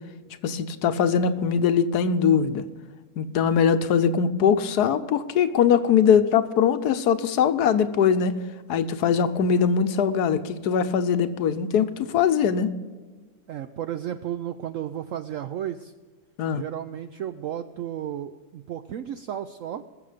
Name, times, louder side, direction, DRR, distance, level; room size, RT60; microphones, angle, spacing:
voice 1, 0.4-2.6 3.2-8.3 8.7-12.7 16.4-16.6, left 7 dB, 70° left, 11 dB, 1.2 m, -21 dB
voice 2, 13.5-15.9 16.5-19.8, right 10 dB, 75° right, 10 dB, 0.7 m, -33 dB
20.5 x 6.9 x 5.1 m, 1.4 s
omnidirectional pair, 1.9 m